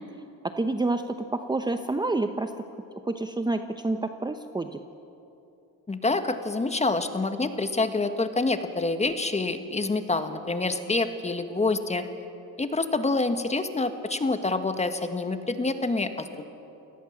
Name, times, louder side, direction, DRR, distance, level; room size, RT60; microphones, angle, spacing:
voice 1, 0.4-2.7 3.0-4.8, right 2 dB, 10° right, 7 dB, 0.9 m, -28 dB
voice 2, 5.9-12.0 12.6-16.5, left 3 dB, 20° left, 8 dB, 1.7 m, -27 dB
28.5 x 17.5 x 7.4 m, 2.9 s
cardioid pair, 95°, 37 cm